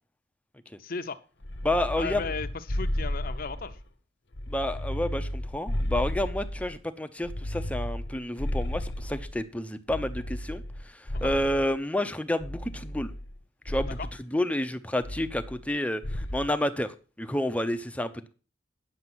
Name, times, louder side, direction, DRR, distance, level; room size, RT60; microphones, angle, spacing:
voice 1, 0.8-1.2 2.0-3.8 11.1-11.3 14.0-14.1, left 4 dB, 55° left, 9 dB, 0.8 m, -35 dB
sound 1, 1.4-3.9 4.3-6.8 7.2-9.4 9.9-11.8 12.4-13.4 13.7-14.2 15.0-15.8 16.0-16.5, left 1 dB, 80° left, 1.3 m, -33 dB
voice 2, 1.6-2.3 4.5-10.6 10.9-13.1 13.7-14.0 14.3-18.3, left 1 dB, 10° left, 9 dB, 0.7 m, -30 dB
9.6 x 6.6 x 6.0 m, 0.36 s
head